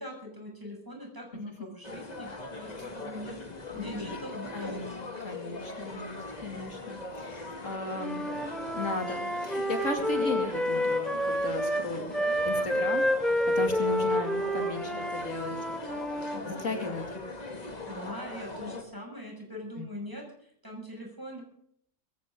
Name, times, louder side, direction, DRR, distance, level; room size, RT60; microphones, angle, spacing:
voice 1, 0.0-3.4 3.7-5.0 16.3-16.9 17.9-21.4, equal, 15° right, 0 dB, 6.4 m, -42 dB
sound 1, 1.8-18.8, left 2 dB, 30° left, 2.0 m, -41 dB
voice 2, 3.7-4.2 4.5-8.2 8.7-15.6 16.4-17.0 19.8-19.9, left 2 dB, 75° left, 4 dB, 3.1 m, -36 dB
Wind instrument woodwind instrument, 8.0-11.9 12.1-16.4, left 1 dB, ahead, 2.2 m, -29 dB
21.0 x 15.5 x 3.8 m, 0.65 s
omnidirectional pair, 1.3 m